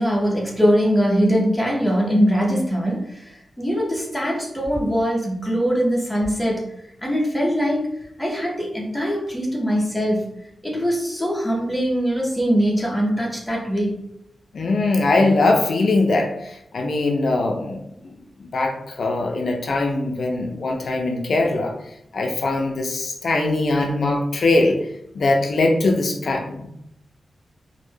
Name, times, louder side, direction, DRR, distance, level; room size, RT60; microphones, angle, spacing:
voice 1, 0.0-6.6 7.0-7.9 8.2-10.3 10.6-13.9, equal, 5° left, -3 dB, 0.6 m, -22 dB
voice 2, 14.5-18.1 18.4-21.8 22.1-24.8 25.1-26.7, left 2 dB, 60° left, 1 dB, 0.3 m, -21 dB
2.1 x 2.0 x 3.1 m, 0.77 s
wide cardioid pair, 145°, 0 cm